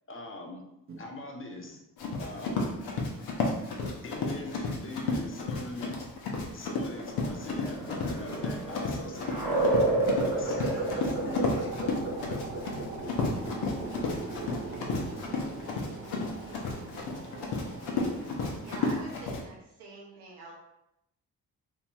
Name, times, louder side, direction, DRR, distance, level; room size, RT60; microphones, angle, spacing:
voice 1, 0.1-0.7 1.0-1.8 2.2-2.7 4.0-5.9 6.5-9.8 10.3-11.7, left 2 dB, 30° left, 0.7 m, -42 dB
Run, 2.0-19.4, left 3 dB, 70° left, 0.7 m, -32 dB
sound 1, 6.8-18.2, right 2 dB, 50° right, 1.2 m, -33 dB
voice 2, 10.3-11.0 11.3-11.4 13.3-18.8, right 3 dB, 35° right, 0.6 m, -46 dB
voice 3, 18.5-20.5, right 3 dB, 90° right, 0.6 m, -46 dB
2.8 x 2.7 x 2.3 m
supercardioid pair, 45°, 40 cm